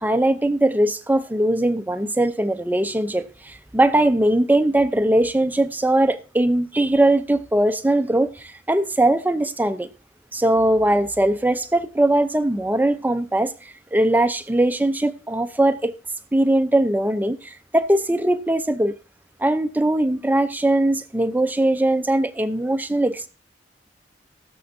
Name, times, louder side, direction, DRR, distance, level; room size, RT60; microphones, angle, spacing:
voice 1, 0.0-9.9 10.3-13.5 13.9-15.9 16.3-19.0 19.4-23.3, right 1 dB, 10° right, 0.6 m, -20 dB
19.5 x 7.0 x 2.7 m
head